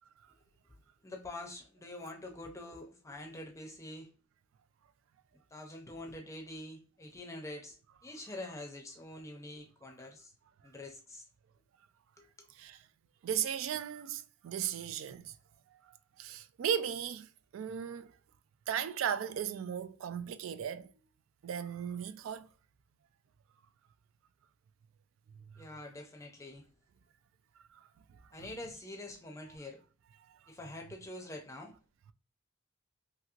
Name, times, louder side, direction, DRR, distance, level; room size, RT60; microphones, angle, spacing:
voice 1, 1.0-4.1 5.5-7.8 8.0-10.3 10.6-11.2 12.2-12.5 25.6-26.6 28.3-29.8 30.5-31.7, left 1 dB, 15° left, 0.5 m, -45 dB
voice 2, 13.2-15.3 15.7-18.1 18.7-20.9 21.4-22.5 27.7-27.8 28.4-28.5 30.3-30.4, right 8 dB, 80° right, 0.3 m, -36 dB
2.9 x 2.8 x 2.4 m
head